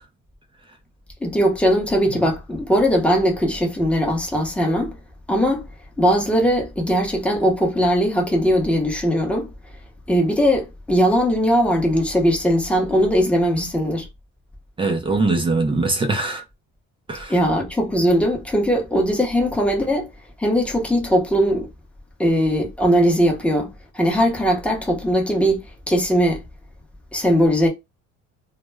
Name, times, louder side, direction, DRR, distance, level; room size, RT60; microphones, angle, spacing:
voice 1, 1.2-4.9 5.3-5.6 6.0-9.5 10.1-14.1 17.3-20.1 20.4-21.7 22.2-26.4 27.1-27.7, equal, 5° left, 0.8 m, -19 dB
voice 2, 14.8-16.4 17.1-17.3, right 3 dB, 15° right, 0.4 m, -22 dB
2.1 x 2.0 x 3.3 m
cardioid pair, 125°, 30 cm